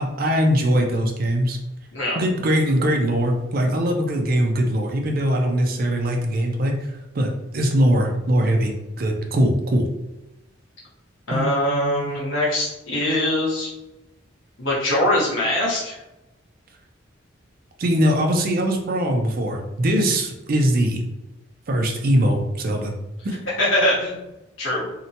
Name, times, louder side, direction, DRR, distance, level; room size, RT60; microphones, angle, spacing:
voice 1, 0.0-1.6 2.1-6.7 7.1-8.7 9.0-9.9 11.3-12.1 17.8-21.0 21.7-22.9, equal, 45° right, 2 dB, 0.4 m, -21 dB
voice 2, 11.3-13.7 14.6-16.0 23.6-24.2 24.6-24.9, left 1 dB, 75° left, -6 dB, 0.9 m, -22 dB
2.7 x 2.1 x 2.7 m, 0.97 s
head